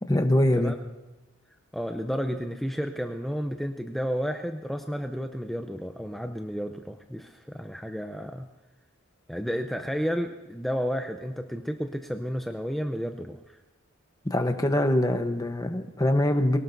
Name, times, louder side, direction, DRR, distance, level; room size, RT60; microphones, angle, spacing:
voice 1, 0.0-0.7 14.2-16.6, left 1 dB, 15° left, 6 dB, 0.9 m, -23 dB
voice 2, 1.7-8.5 9.3-13.6, equal, ahead, 4 dB, 0.5 m, -32 dB
23.0 x 18.0 x 2.7 m, 1.1 s
head